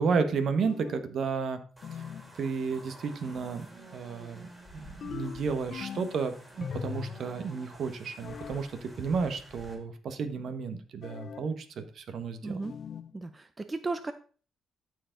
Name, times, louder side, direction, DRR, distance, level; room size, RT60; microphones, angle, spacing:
voice 1, 0.0-1.6 2.3-4.5 4.7-12.6, right 5 dB, 60° right, 9 dB, 1.2 m, -32 dB
sound 1, 0.6-1.2 1.8-2.3 5.0-6.2 6.6-7.3 8.2-8.7 11.0-11.5 12.6-13.1, left 7 dB, 55° left, 0.6 m, -40 dB
sound 2, 1.8-9.7, right 1 dB, 5° right, 3.0 m, -51 dB
voice 2, 12.4-12.8 13.1-14.1, right 3 dB, 20° right, 9 dB, 0.7 m, -35 dB
13.5 x 4.8 x 3.9 m, 0.39 s
cardioid pair, 90°, 0 cm